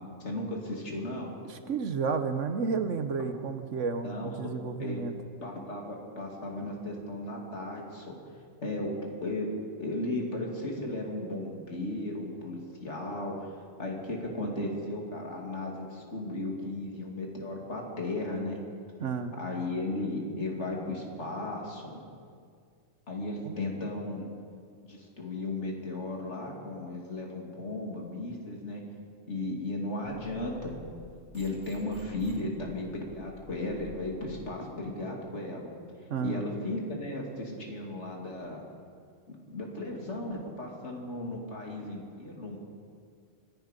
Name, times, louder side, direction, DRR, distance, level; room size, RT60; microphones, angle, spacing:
voice 1, 0.2-1.3 4.0-4.5 4.8-5.0 5.4-8.1 8.6-8.9 9.2-18.6 19.4-22.0 23.1-24.3 24.8-28.8 29.3-30.8 31.3-35.7 36.2-38.6 39.3-42.6, left 2 dB, 65° left, 0 dB, 2.8 m, -35 dB
voice 2, 1.7-5.1 19.0-19.3 23.4-23.5 36.1-36.4, right 5 dB, 75° right, 8 dB, 1.3 m, -31 dB
sound 1, 30.0-34.3, left 1 dB, 30° left, 4.4 m, -51 dB
25.5 x 10.5 x 5.2 m, 2.2 s
omnidirectional pair, 1.3 m